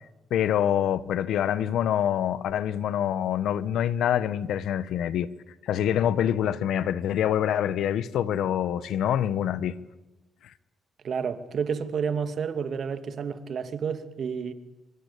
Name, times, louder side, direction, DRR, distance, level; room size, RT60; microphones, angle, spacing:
voice 1, 0.3-5.3 5.6-9.7, left 10 dB, 75° left, 1.3 m, -25 dB
voice 2, 11.0-14.5, right 6 dB, 55° right, 2.5 m, -30 dB
26.0 x 25.0 x 8.6 m
cardioid pair, 90°, 0 cm